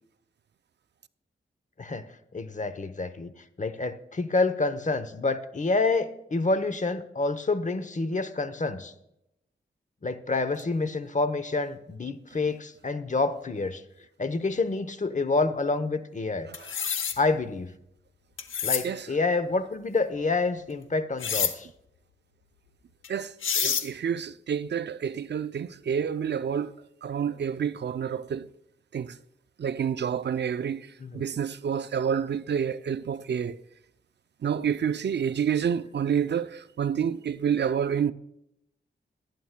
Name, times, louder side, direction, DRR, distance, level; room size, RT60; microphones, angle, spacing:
voice 1, 2.3-3.3 3.6-8.9 10.0-13.8 14.2-16.5 17.2-17.7 18.6-21.7 31.0-31.2, left 3 dB, 40° left, 0.8 m, -28 dB
sound 1, 16.5-17.2 18.4-18.8 21.2-21.5 23.0-23.1 23.4-23.9, left 7 dB, 85° left, 0.8 m, -27 dB
voice 2, 23.1-28.5 28.9-29.2 29.6-33.6 34.4-38.1, right 8 dB, 60° right, 0.4 m, -29 dB
18.5 x 9.4 x 2.2 m
cardioid pair, 50°, 20 cm